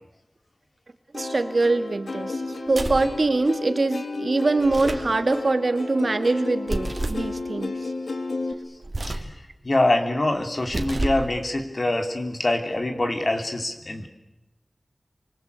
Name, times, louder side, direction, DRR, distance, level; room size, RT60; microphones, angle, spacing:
Plucked string instrument, 1.1-8.5, left 2 dB, 90° left, 2.8 m, -32 dB
voice 1, 1.1-2.4 2.7-7.9, right 2 dB, 65° right, 8 dB, 2.2 m, -23 dB
sound 1, 2.7-3.1 4.6-5.1 6.7-7.3 8.8-9.3 10.6-11.3, right 2 dB, 50° right, 2.9 m, -29 dB
voice 2, 9.0-14.1, left 2 dB, 50° left, 5 dB, 3.4 m, -25 dB
28.0 x 24.0 x 8.3 m, 0.96 s
wide cardioid pair, 65°, 0 cm